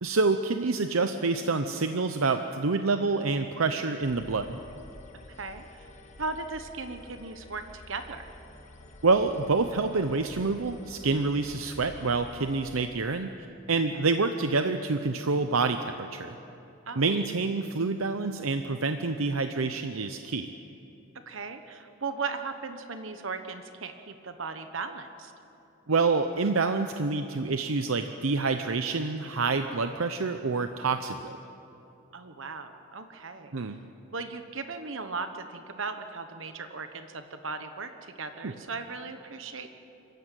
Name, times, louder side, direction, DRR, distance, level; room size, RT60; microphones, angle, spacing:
voice 1, 0.0-4.6 9.0-13.3 13.7-16.3 17.0-20.5 25.9-31.4 33.5-33.8 38.4-38.5, right 3 dB, 85° right, 7 dB, 0.8 m, -27 dB
sound 1, 4.0-12.8, left 1 dB, 35° left, 1.7 m, -49 dB
voice 2, 5.4-5.9 6.2-8.3 16.9-17.2 21.3-25.3 32.1-33.5 34.1-39.7, right 4 dB, 65° right, 8 dB, 1.1 m, -37 dB
26.5 x 15.0 x 9.2 m, 2.9 s
head